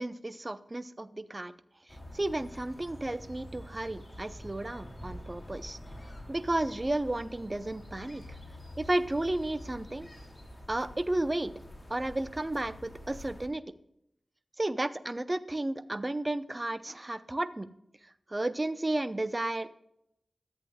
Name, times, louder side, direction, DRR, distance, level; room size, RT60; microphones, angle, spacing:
voice 1, 0.0-1.5 2.1-5.8 6.3-8.2 8.8-10.1 10.7-11.5 11.9-13.6 14.6-17.7 18.3-19.7, right 1 dB, 30° right, 13 dB, 0.6 m, -32 dB
sound 1, 1.9-13.5, equal, 25° left, 2.4 m, -47 dB
14.0 x 8.2 x 2.3 m, 0.77 s
wide cardioid pair, 60°, 0 cm